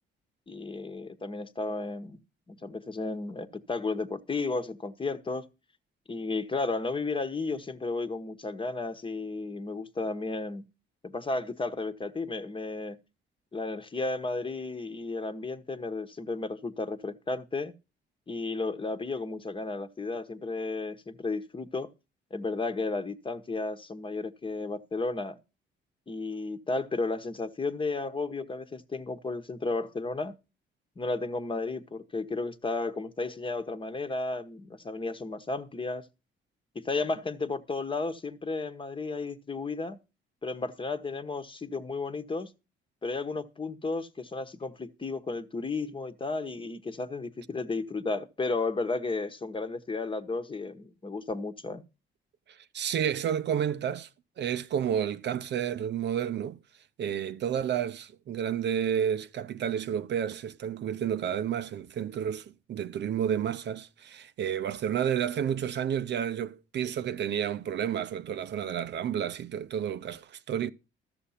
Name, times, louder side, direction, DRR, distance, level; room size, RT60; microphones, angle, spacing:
voice 1, 0.5-2.2 2.5-5.5 6.1-10.7 11.0-13.0 13.5-17.7 18.3-21.9 22.3-25.4 26.1-30.3 31.0-36.0 36.8-40.0 40.4-42.5 43.0-51.8, left 3 dB, 25° left, 1.1 m, -33 dB
voice 2, 52.5-54.1 54.4-56.6 57.0-70.7, right 9 dB, 60° right, 0.7 m, -31 dB
13.0 x 6.8 x 5.7 m
cardioid pair, 90°, 20 cm